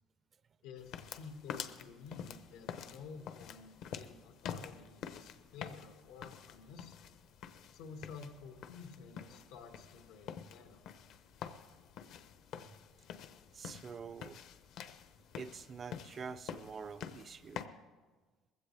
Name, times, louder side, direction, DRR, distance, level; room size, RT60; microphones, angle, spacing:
voice 1, 0.6-7.0 7.7-10.8, left 5 dB, 90° left, 1.9 m, -51 dB
sound 1, 0.8-17.7, left 8 dB, 55° left, 0.8 m, -48 dB
voice 2, 13.5-14.4 15.4-17.6, right 5 dB, 25° right, 0.4 m, -46 dB
20.5 x 15.5 x 3.4 m
cardioid pair, 155°, 0 cm